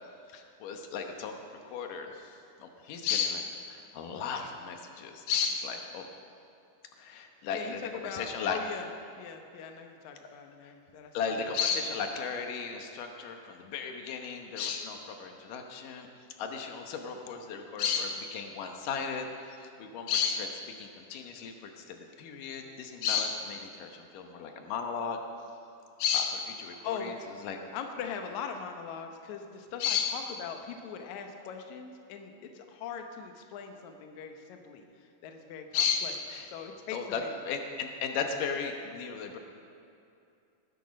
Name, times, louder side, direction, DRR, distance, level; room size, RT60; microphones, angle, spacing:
voice 1, 0.3-1.4 1.6-2.3 2.6-6.1 7.0-8.6 10.6-10.7 11.1-16.1 16.4-19.3 19.6-25.2 26.0-27.2 27.4-27.6 29.8-30.2 35.7-36.5 36.9-39.4, left 6 dB, 70° left, 4 dB, 2.2 m, -34 dB
voice 2, 7.5-8.9 9.2-11.4 26.8-27.2 27.7-36.1 36.5-37.4, left 7 dB, 85° left, 4 dB, 1.6 m, -41 dB
18.5 x 11.0 x 5.3 m, 2.6 s
omnidirectional pair, 4.8 m